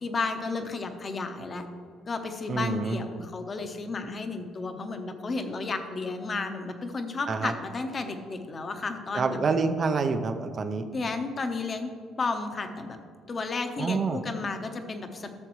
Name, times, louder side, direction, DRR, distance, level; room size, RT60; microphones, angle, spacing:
voice 1, 0.0-1.6 2.1-9.4 10.9-11.9 12.2-13.0 13.3-15.4, left 3 dB, 35° left, 6 dB, 0.9 m, -32 dB
voice 2, 2.5-3.0 7.3-7.5 9.1-10.9 13.8-14.2, right 4 dB, 40° right, 7 dB, 0.6 m, -27 dB
13.0 x 6.7 x 3.1 m, 2.1 s
cardioid pair, 110°, 0 cm